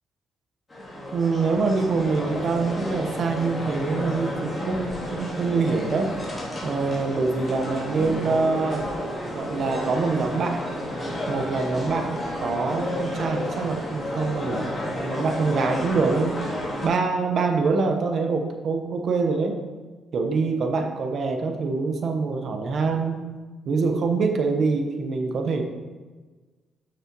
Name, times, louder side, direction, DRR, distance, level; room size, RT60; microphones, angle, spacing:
sound 1, 0.7-16.9, left 1 dB, 25° left, 3.0 m, -31 dB
voice 1, 1.1-6.1 6.6-8.9 9.3-10.7 11.3-16.4 16.8-19.6 20.1-23.2 23.6-25.6, right 4 dB, 60° right, 4 dB, 1.2 m, -25 dB
11.5 x 6.6 x 3.1 m, 1.3 s
cardioid pair, 90°, 0 cm